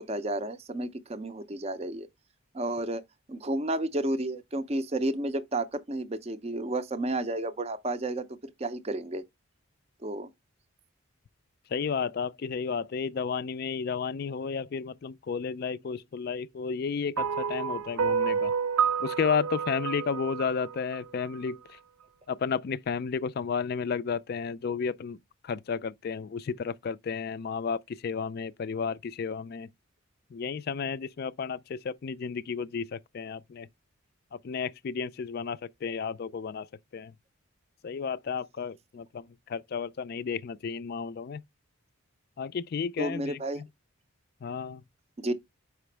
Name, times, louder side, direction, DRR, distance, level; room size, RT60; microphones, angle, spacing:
voice 1, 0.0-2.1 2.5-3.0 3.3-9.2 10.0-10.3 43.0-43.6 45.2-45.3, right 1 dB, 30° right, 0.5 m, -31 dB
voice 2, 11.7-18.5 19.0-21.8 22.3-25.2 25.4-29.7 30.3-33.7 34.3-36.7 36.9-37.1 37.8-41.4 42.4-43.7 44.4-44.8, left 6 dB, 45° left, 0.3 m, -32 dB
sound 1, 17.2-21.5, right 6 dB, 90° right, 0.5 m, -29 dB
6.0 x 4.9 x 3.2 m
head